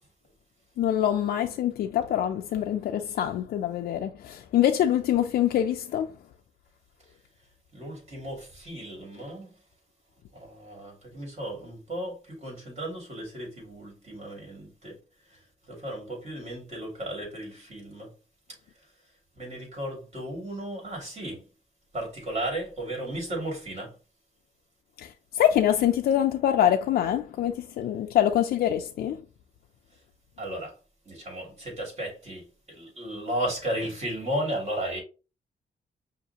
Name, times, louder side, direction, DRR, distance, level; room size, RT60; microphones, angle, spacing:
voice 1, 0.8-6.1 25.0-25.1 25.3-29.2, left 11 dB, 85° left, 0.4 m, -24 dB
voice 2, 7.7-9.5 10.3-15.0 15.3-18.1 19.4-21.4 21.9-23.9 30.4-30.7 31.1-35.0, right 1 dB, 45° right, 2.5 m, -35 dB
5.6 x 2.6 x 2.8 m
cardioid pair, 105°, 16 cm